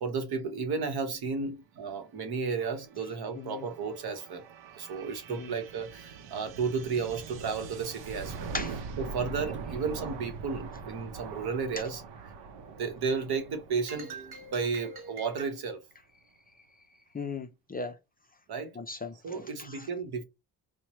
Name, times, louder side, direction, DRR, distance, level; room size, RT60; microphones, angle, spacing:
voice 1, 0.0-4.4 4.7-8.5 9.0-12.0 12.7-15.8 18.5-18.8 19.2-20.2, right 5 dB, 65° right, 1.0 m, -33 dB
sound 1, 2.0-15.5, right 5 dB, 85° right, 0.7 m, -43 dB
voice 2, 17.1-18.0 18.8-19.9, left 4 dB, 20° left, 0.4 m, -38 dB
4.5 x 2.1 x 3.0 m
cardioid pair, 125°, 42 cm